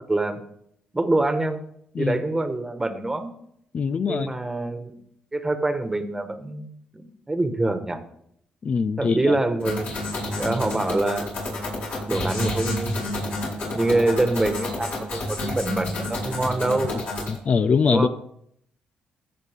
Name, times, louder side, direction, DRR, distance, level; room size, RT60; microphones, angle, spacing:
voice 1, 0.1-0.4 0.9-1.6 2.0-3.3 4.0-5.0 5.3-8.0 9.0-9.9 10.3-11.3 12.1-13.1 13.7-17.0 17.9-18.1, right 2 dB, 15° right, 1.4 m, -25 dB
voice 2, 3.7-4.3 8.6-9.4 17.3-18.1, left 5 dB, 45° left, 0.5 m, -22 dB
sound 1, 9.6-17.4, left 1 dB, 65° left, 4.7 m, -29 dB
15.5 x 6.8 x 3.6 m
cardioid pair, 75°, 3 cm